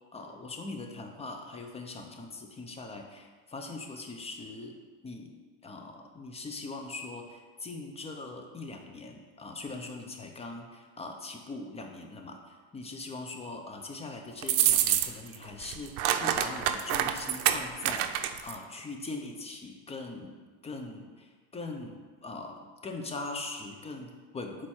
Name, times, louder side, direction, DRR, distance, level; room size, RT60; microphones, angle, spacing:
voice 1, 0.1-5.3 5.6-20.4 20.6-24.7, left 3 dB, 15° left, 3 dB, 0.6 m, -41 dB
sound 1, 14.4-15.4 15.6-18.6, right 11 dB, 80° right, 0.6 m, -27 dB
6.2 x 4.4 x 4.3 m, 1.4 s
cardioid pair, 130°, 43 cm